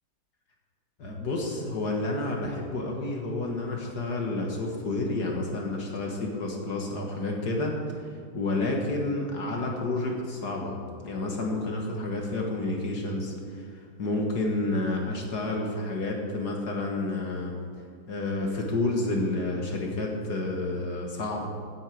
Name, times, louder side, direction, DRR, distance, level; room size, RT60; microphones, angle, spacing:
voice 1, 1.0-8.1 8.3-17.6 18.1-21.5, left 2 dB, 55° left, 0 dB, 2.0 m, -30 dB
9.1 x 8.5 x 8.4 m, 2.2 s
omnidirectional pair, 2.2 m